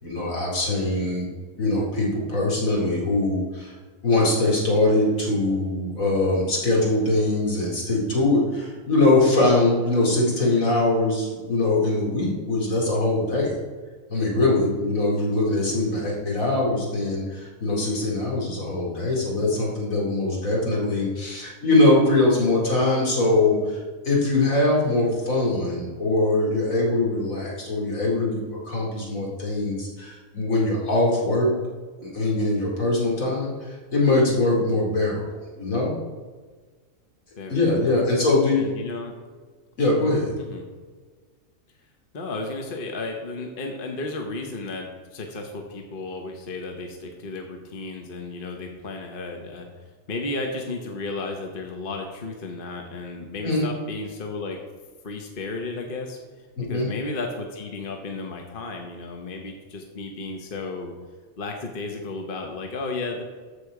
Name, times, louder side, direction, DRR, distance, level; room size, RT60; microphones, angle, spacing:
voice 1, 0.0-1.3 1.6-3.7 4.0-13.6 14.1-31.5 32.0-35.2 35.6-35.9 37.5-38.6 39.8-40.3 53.4-53.6 56.6-56.9, left 2 dB, 75° left, -3 dB, 3.0 m, -22 dB
voice 2, 38.6-39.1 40.4-40.6 42.1-49.7 50.1-54.6 55.0-56.2 56.7-60.9 61.4-63.2, left 3 dB, 40° left, 3 dB, 1.1 m, -33 dB
13.5 x 5.0 x 4.9 m, 1.4 s
omnidirectional pair, 1.5 m